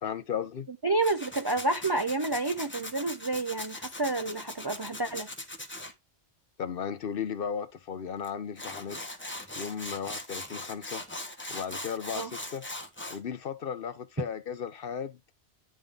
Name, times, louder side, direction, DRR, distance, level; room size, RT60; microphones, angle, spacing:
voice 1, 0.0-0.7 6.6-9.0 9.6-11.0 11.5-12.6 13.1-15.2, left 7 dB, 60° left, 0.8 m, -35 dB
voice 2, 0.8-5.3 12.1-12.3, right 2 dB, 35° right, 0.4 m, -29 dB
Tools, 1.0-5.9 8.2-8.3 8.6-13.2, left 1 dB, 10° left, 1.0 m, -40 dB
10.5 x 3.7 x 3.7 m
omnidirectional pair, 1.2 m